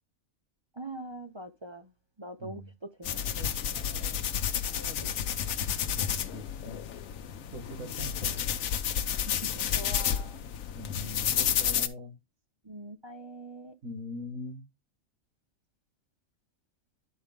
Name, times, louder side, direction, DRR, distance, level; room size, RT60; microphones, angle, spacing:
voice 1, 0.7-1.9 2.2-4.2 4.7-5.0 7.8-8.0 9.3-10.4 12.6-13.7, right 1 dB, 35° right, 0.5 m, -44 dB
voice 2, 2.4-2.7 5.9-6.8 7.5-8.4 10.7-12.1 13.8-14.6, left 1 dB, 70° right, 2.3 m, -41 dB
sound 1, 3.0-11.9, left 9 dB, 75° left, 1.1 m, -31 dB
11.0 x 4.5 x 3.5 m
omnidirectional pair, 1.4 m